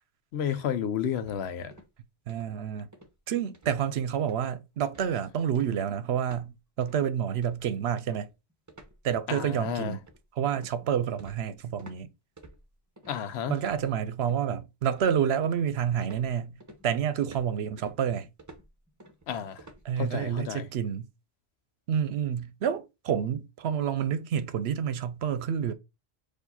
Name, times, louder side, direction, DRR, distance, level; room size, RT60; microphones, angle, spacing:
voice 1, 0.3-1.7 9.3-10.0 13.1-13.5 19.3-19.6 20.0-20.7, left 8 dB, 70° left, 0.8 m, -31 dB
sound 1, 1.2-2.0 2.3-2.6 2.9-3.2 3.5-3.9 4.2-4.5 4.9-5.2 5.5-6.5 6.8-7.0 7.4-12.0 12.4-13.1 13.6-14.4 14.9-15.7 16.0-20.3, right 1 dB, 20° right, 0.7 m, -52 dB
voice 2, 2.3-2.9 3.3-8.3 9.0-10.0 10.4-12.1 13.5-16.6 16.8-18.3 19.8-21.1 21.9-25.7, right 8 dB, 70° right, 0.8 m, -29 dB
4.6 x 2.6 x 4.0 m
omnidirectional pair, 1.1 m